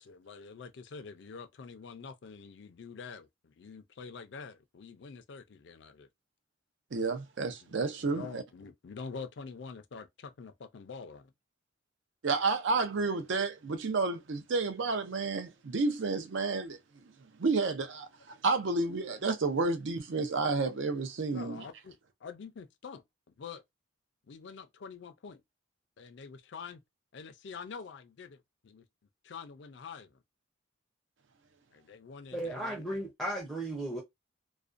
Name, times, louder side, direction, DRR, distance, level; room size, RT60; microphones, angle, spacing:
voice 1, 0.0-6.1 7.6-11.3 21.3-23.0 23.4-23.6 24.3-25.4 26.0-26.8 27.1-28.8 29.2-30.1 31.7-32.8, left 5 dB, 60° left, 0.4 m, -46 dB
voice 2, 6.9-8.4 12.2-21.7, right 3 dB, 65° right, 0.5 m, -31 dB
voice 3, 32.3-34.0, right 1 dB, ahead, 0.5 m, -35 dB
2.4 x 2.1 x 2.4 m
head